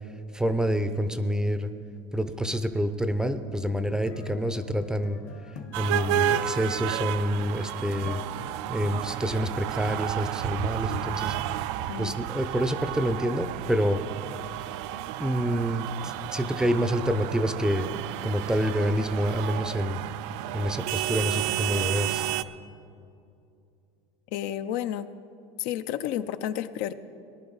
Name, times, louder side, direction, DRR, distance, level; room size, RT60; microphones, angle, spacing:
voice 1, 0.3-1.7 2.1-5.2 5.8-8.2 8.7-11.7 12.0-14.0 15.2-17.9 18.2-20.0 20.5-22.2, equal, 5° right, 10 dB, 0.5 m, -27 dB
sound 1, 4.0-10.3, left 7 dB, 50° left, 1.2 m, -47 dB
sound 2, 5.7-22.4, right 12 dB, 70° right, 0.4 m, -32 dB
voice 2, 24.3-25.1 25.6-26.9, left 11 dB, 65° left, 11 dB, 0.6 m, -31 dB
19.0 x 10.5 x 4.0 m, 2.5 s
supercardioid pair, 130°, 15 cm